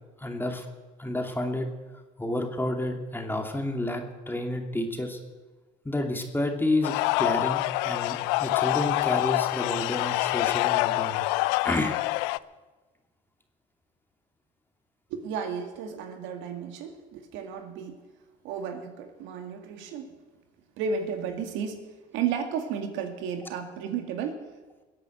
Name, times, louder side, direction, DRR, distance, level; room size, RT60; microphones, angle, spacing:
voice 1, 0.2-0.7 1.0-1.7 2.2-5.2 5.8-11.2 11.6-12.0, left 1 dB, 10° left, 3 dB, 2.5 m, -30 dB
sound 1, 6.8-12.4, left 20 dB, 80° left, 0.5 m, -26 dB
voice 2, 15.1-18.0 18.4-20.1 20.8-21.9 22.1-24.4, right 6 dB, 75° right, 5 dB, 2.1 m, -33 dB
21.0 x 8.4 x 7.8 m, 1.2 s
supercardioid pair, 90°, 20 cm